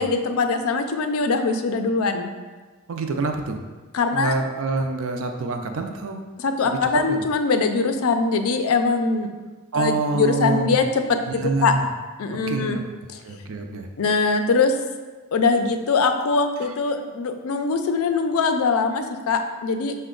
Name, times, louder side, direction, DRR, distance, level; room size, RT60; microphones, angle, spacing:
voice 1, 0.0-2.3 3.9-4.3 6.4-9.3 9.7-11.7 12.2-12.8 13.1-13.2 14.0-14.7 15.3-20.0, left 4 dB, 75° left, 7 dB, 0.4 m, -22 dB
voice 2, 2.9-3.6 4.1-6.2 6.6-7.2 9.7-10.8 11.3-11.9 12.5-12.8 13.2-13.9, right 3 dB, 65° right, 5 dB, 0.4 m, -26 dB
5.7 x 2.2 x 3.7 m, 1.3 s
head